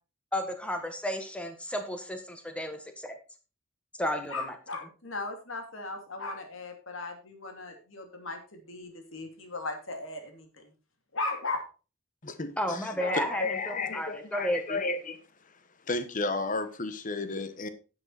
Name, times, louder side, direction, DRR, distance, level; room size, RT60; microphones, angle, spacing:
voice 1, 0.3-3.1 4.0-4.5 12.6-14.8, equal, 5° left, 6 dB, 1.7 m, -33 dB
voice 2, 4.3-10.7 11.1-11.6, left 3 dB, 75° left, 5 dB, 2.7 m, -37 dB
voice 3, 12.2-15.2 15.9-17.7, left 3 dB, 40° left, 11 dB, 1.2 m, -33 dB
10.5 x 7.8 x 4.3 m, 0.34 s
head